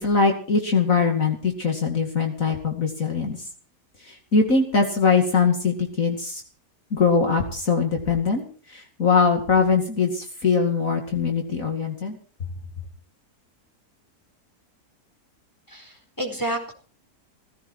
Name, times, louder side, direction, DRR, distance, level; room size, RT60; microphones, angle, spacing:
voice 1, 0.0-3.5 4.0-6.4 6.9-12.2, left 5 dB, 55° left, 2 dB, 2.8 m, -22 dB
voice 2, 15.7-16.7, right 1 dB, 10° left, 3 dB, 4.5 m, -30 dB
17.5 x 16.0 x 4.5 m, 0.41 s
omnidirectional pair, 1.7 m